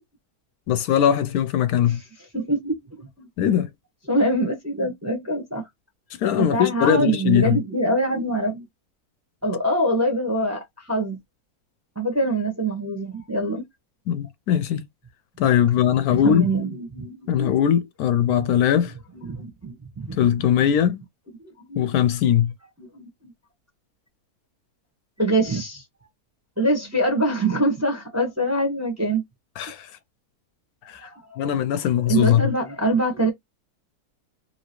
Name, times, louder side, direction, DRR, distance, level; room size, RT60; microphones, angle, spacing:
voice 1, 0.7-2.0 3.4-3.7 6.2-7.6 14.1-14.9 15.4-16.5 17.3-18.9 20.2-21.0 21.8-22.5 29.6-29.9 30.9-31.0 31.4-32.4, left 9 dB, 75° left, 1.0 m, -20 dB
voice 2, 2.3-3.3 4.1-5.7 6.5-8.6 9.4-11.2 12.0-13.6 16.1-17.5 19.1-20.2 21.4-21.9 22.8-23.3 25.2-25.8 26.6-29.2 31.0-31.4 31.8-33.3, right 1 dB, 15° right, 0.7 m, -24 dB
2.9 x 2.8 x 2.9 m
omnidirectional pair, 1.7 m